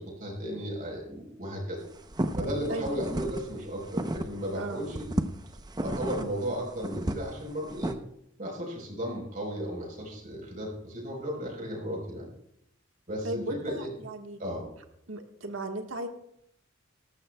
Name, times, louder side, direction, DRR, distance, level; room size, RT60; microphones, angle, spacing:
voice 1, 0.0-1.8 2.4-5.1 5.8-8.0 8.4-12.3 13.1-13.9 14.4-14.7, equal, 45° right, -1 dB, 4.0 m, -35 dB
sound 1, 1.8-4.5 4.8-7.9, right 1 dB, 20° right, 0.6 m, -33 dB
voice 2, 2.7-3.0 4.5-4.9 13.2-14.4 15.1-16.1, right 2 dB, 80° right, 4 dB, 1.4 m, -36 dB
19.0 x 14.0 x 2.2 m, 0.76 s
head